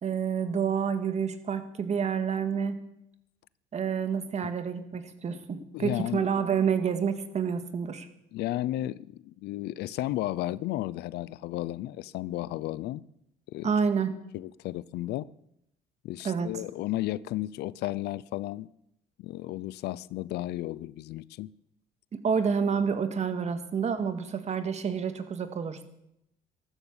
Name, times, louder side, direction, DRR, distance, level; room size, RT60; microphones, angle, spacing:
voice 1, 0.0-2.8 3.7-8.1 13.6-14.1 16.2-16.5 22.1-25.8, right 6 dB, 40° right, 1.9 m, -28 dB
voice 2, 5.7-6.2 8.3-13.0 13.5-13.7 14.3-15.3 16.0-18.7 19.2-21.5, left 15 dB, 75° left, 0.5 m, -33 dB
14.0 x 13.0 x 7.3 m
cardioid pair, 110°, 17 cm